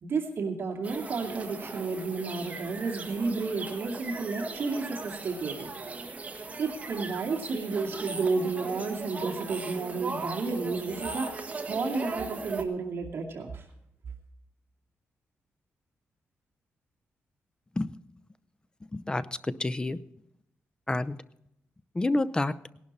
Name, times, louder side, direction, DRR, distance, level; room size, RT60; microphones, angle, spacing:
voice 1, 0.0-5.7 6.6-13.6, right 4 dB, 60° right, 1 dB, 2.4 m, -32 dB
sound 1, 0.8-12.6, right 3 dB, 30° right, 1.7 m, -38 dB
voice 2, 18.8-20.0 20.9-21.2 21.9-22.5, left 2 dB, 20° left, 15 dB, 0.6 m, -29 dB
18.0 x 11.5 x 4.2 m, 0.78 s
cardioid pair, 110°, 5 cm